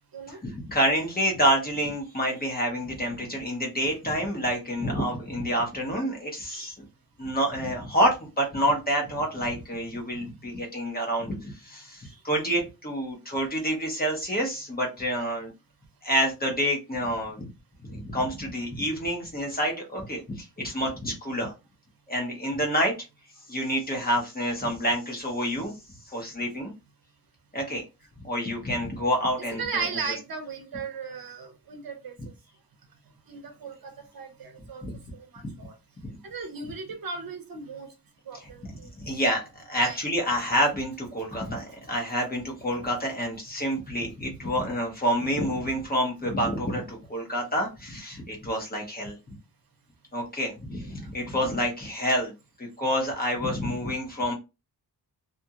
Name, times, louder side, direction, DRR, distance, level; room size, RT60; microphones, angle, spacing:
voice 1, 0.3-6.7 7.2-15.5 16.0-17.5 17.8-21.5 22.1-22.9 23.5-25.7 26.1-26.7 27.5-27.8 28.2-29.8 34.8-35.0 35.4-35.5 36.0-36.1 36.6-36.7 38.6-39.4 39.7-49.2 50.1-52.3 52.6-54.3, equal, 25° left, -1 dB, 0.8 m, -28 dB
voice 2, 29.6-32.1 33.3-34.8 35.1-35.7 36.2-37.9 38.3-38.9 39.8-40.0, right 5 dB, 60° right, 5 dB, 0.7 m, -36 dB
2.5 x 2.4 x 2.7 m, 0.27 s
wide cardioid pair, 165°, 40 cm